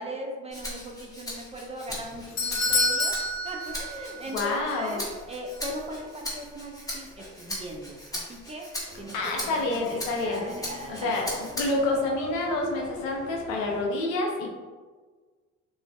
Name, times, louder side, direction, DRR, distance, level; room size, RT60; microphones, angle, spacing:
voice 1, 0.0-3.2 3.4-8.7 9.0-9.6 9.9-11.1, equal, 20° right, 1 dB, 0.3 m, -39 dB
Rattle (instrument), 0.5-12.0 12.4-13.6, left 1 dB, 10° left, 0.9 m, -39 dB
Doorbell, 1.9-4.4 4.7-4.8 5.5-5.6, left 2 dB, 45° left, 0.6 m, -28 dB
voice 2, 4.3-5.0 9.1-10.4 11.0-14.5, left 2 dB, 85° left, 0 dB, 0.5 m, -28 dB
sound 1, 8.9-13.9, equal, 50° right, 0.7 m, -42 dB
2.4 x 2.3 x 2.2 m, 1.5 s
hypercardioid pair, 50°, 36 cm